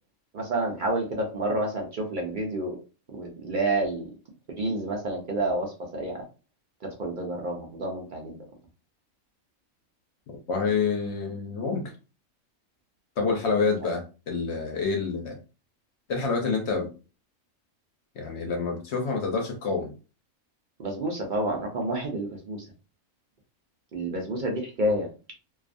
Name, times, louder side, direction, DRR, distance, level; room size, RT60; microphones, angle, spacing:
voice 1, 0.3-2.8 3.1-4.1 4.5-6.2 7.0-8.4 20.8-22.6 23.9-25.1, right 1 dB, 65° right, 0 dB, 0.4 m, -29 dB
voice 2, 10.3-11.9 13.2-15.4 16.1-16.9 18.2-19.9, left 4 dB, 65° left, 2 dB, 0.7 m, -27 dB
2.4 x 2.3 x 2.4 m, 0.33 s
omnidirectional pair, 1.4 m